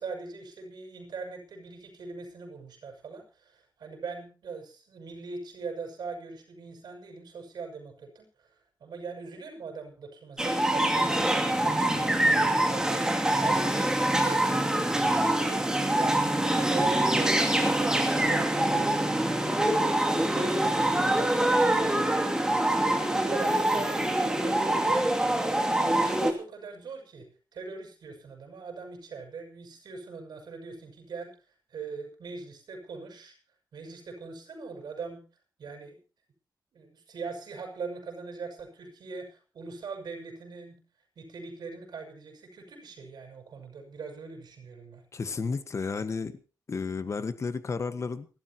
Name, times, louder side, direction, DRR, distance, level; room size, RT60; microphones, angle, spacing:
voice 1, 0.0-8.5 8.8-13.0 13.4-20.0 20.3-22.3 22.8-31.3 31.7-33.4 33.7-35.2 35.6-36.0 36.7-40.8 41.2-45.0, right 4 dB, 85° right, 3 dB, 6.3 m, -41 dB
sound 1, 10.4-26.3, right 1 dB, 10° right, 2.6 m, -25 dB
voice 2, 45.1-46.4 46.7-48.3, left 4 dB, 45° left, 11 dB, 1.5 m, -32 dB
29.0 x 12.5 x 3.0 m, 0.34 s
wide cardioid pair, 135°, 7 cm